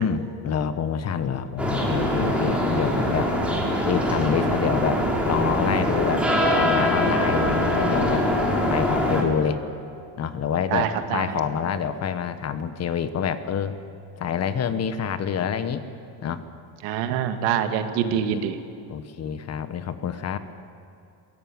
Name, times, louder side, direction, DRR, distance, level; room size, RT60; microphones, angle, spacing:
voice 1, 0.0-3.3 3.8-5.0 5.3-6.2 6.5-8.2 8.7-9.6 10.2-13.8 14.2-15.8 16.2-16.4 18.1-18.4 18.9-20.4, left 7 dB, 35° left, 11 dB, 1.2 m, -27 dB
sound 1, 1.6-9.2, equal, 5° right, 3.6 m, -23 dB
voice 2, 10.7-11.4 16.8-18.6, right 9 dB, 85° right, 7 dB, 1.9 m, -25 dB
21.5 x 17.0 x 9.0 m, 2.7 s
cardioid pair, 140°, 44 cm